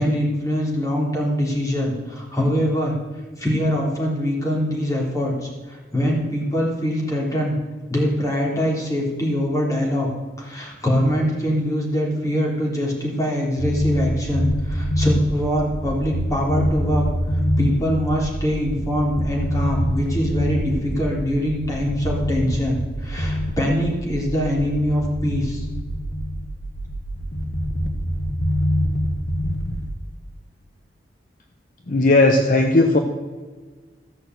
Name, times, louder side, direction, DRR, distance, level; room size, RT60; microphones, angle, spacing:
voice 1, 0.0-2.9 3.4-7.6 7.9-10.1 10.4-17.1 17.6-25.7, equal, 20° left, -2 dB, 3.4 m, -23 dB
sound 1, 13.6-29.9, equal, 85° left, 1.5 m, -25 dB
voice 2, 31.9-33.0, left 2 dB, 50° left, 3 dB, 1.0 m, -16 dB
14.5 x 6.5 x 8.1 m, 1.3 s
head